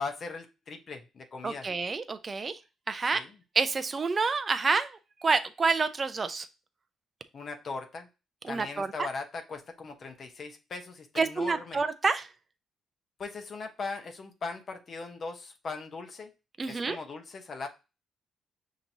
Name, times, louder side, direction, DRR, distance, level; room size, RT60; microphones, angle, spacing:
voice 1, 0.0-1.7 3.1-3.3 7.3-8.1 8.5-11.8 13.2-16.3 16.7-17.7, left 4 dB, 50° left, 4 dB, 0.9 m, -39 dB
voice 2, 1.4-2.5 2.9-3.2 3.6-6.5 8.4-8.9 11.2-12.3 16.6-17.0, right 4 dB, 35° right, 10 dB, 0.5 m, -28 dB
5.8 x 3.0 x 2.7 m, 0.28 s
cardioid pair, 90°, 0 cm